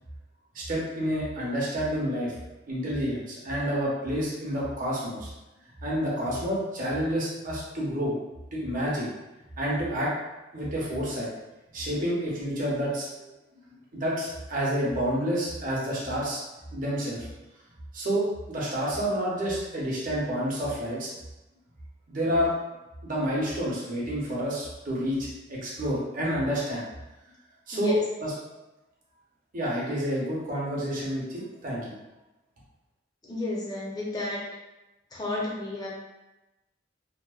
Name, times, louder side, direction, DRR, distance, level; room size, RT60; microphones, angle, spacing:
voice 1, 0.5-2.3 2.7-5.3 5.8-8.2 8.5-9.1 9.6-10.1 10.5-11.3 11.7-13.3 13.9-16.4 16.7-17.3 17.9-21.1 22.1-22.5 23.0-26.8 27.7-27.9 28.2-28.3 29.5-32.0, equal, 50° right, -5 dB, 0.7 m, -29 dB
voice 2, 33.2-34.4 35.1-35.9, left 1 dB, 20° left, -4 dB, 0.5 m, -31 dB
2.7 x 2.0 x 2.3 m, 1.0 s
head